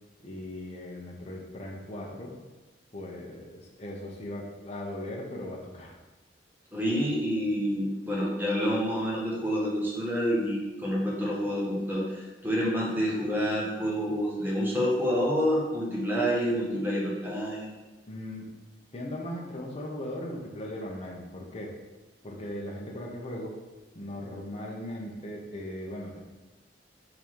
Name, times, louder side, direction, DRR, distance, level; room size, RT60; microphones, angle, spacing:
voice 1, 0.2-2.3 2.9-6.0 18.1-18.5 18.9-21.8 22.2-23.6 23.9-26.2, left 1 dB, 35° left, -2 dB, 1.0 m, -38 dB
voice 2, 6.7-17.7, equal, 10° right, -5 dB, 1.5 m, -28 dB
5.5 x 3.9 x 4.6 m, 1.2 s
head